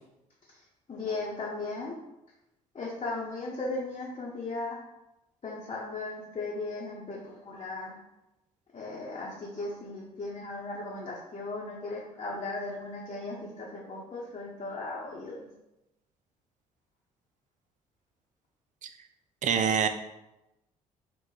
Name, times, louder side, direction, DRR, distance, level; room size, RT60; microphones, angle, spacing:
voice 1, 0.9-1.9 2.7-4.8 5.4-7.9 8.7-15.5, left 2 dB, 35° left, -5 dB, 1.1 m, -37 dB
voice 2, 19.4-19.9, right 7 dB, 50° right, 7 dB, 0.5 m, -25 dB
3.6 x 2.5 x 4.5 m, 0.93 s
hypercardioid pair, 50°, 17 cm